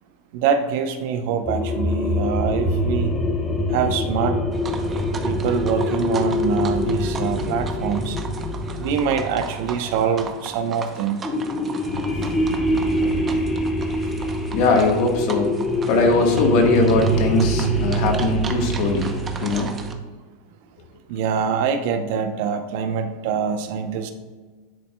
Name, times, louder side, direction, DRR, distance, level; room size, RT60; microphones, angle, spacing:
voice 1, 0.3-3.1 3.7-4.4 5.2-8.2 8.8-11.2 21.1-24.1, right 7 dB, 65° right, 8 dB, 0.7 m, -24 dB
sound 1, 1.4-10.5 11.2-20.0, equal, 15° left, 0.9 m, -24 dB
sound 2, 4.5-19.9, right 5 dB, 25° right, 0.7 m, -37 dB
voice 2, 14.5-15.5 15.9-19.2 19.4-19.7, left 3 dB, 55° left, 3 dB, 1.3 m, -20 dB
10.5 x 4.3 x 2.2 m, 1.4 s
supercardioid pair, 120°, 0 cm